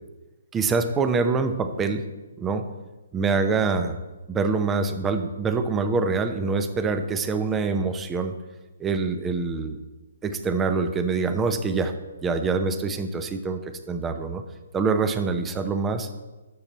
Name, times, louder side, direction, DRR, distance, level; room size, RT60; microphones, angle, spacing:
voice 1, 0.5-2.0 2.4-2.7 3.1-4.0 4.3-8.3 8.8-9.8 10.2-11.9 12.2-14.4 14.7-16.1, right 4 dB, 15° right, 9 dB, 0.7 m, -25 dB
12.5 x 7.3 x 4.1 m, 1.2 s
hypercardioid pair, 140°, 0 cm